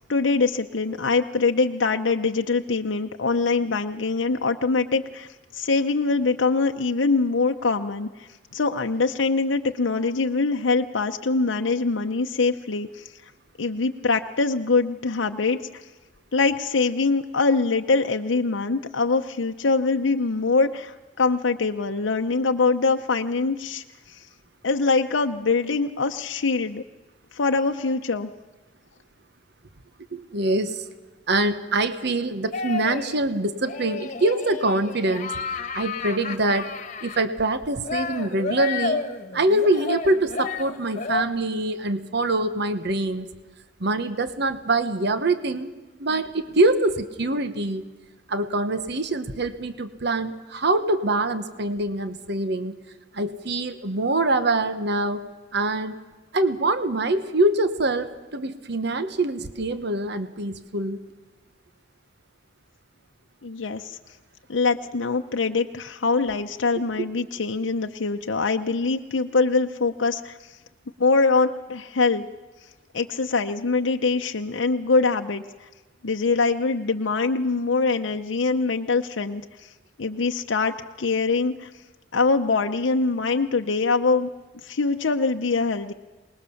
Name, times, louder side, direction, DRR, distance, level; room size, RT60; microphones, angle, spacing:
voice 1, 0.1-8.3 8.5-13.1 13.6-15.8 16.3-24.2 24.6-26.8 27.3-28.3 63.4-64.0 64.5-70.6 71.0-72.3 72.9-75.7 76.0-79.7 80.0-81.7 82.1-84.3 84.6-85.9, left 4 dB, 85° left, 5 dB, 0.8 m, -23 dB
voice 2, 30.1-30.8 31.3-35.3 35.7-36.7 37.0-39.0 39.3-43.3 43.8-45.7 46.0-47.8 48.3-52.7 53.1-55.2 55.5-56.0 56.3-61.0 67.0-67.1, right 2 dB, 65° right, 10 dB, 1.2 m, -24 dB
sound 1, 32.5-33.2 33.6-37.2 37.9-41.2, left 4 dB, 40° left, 1.5 m, -31 dB
25.5 x 20.0 x 7.1 m, 1.2 s
head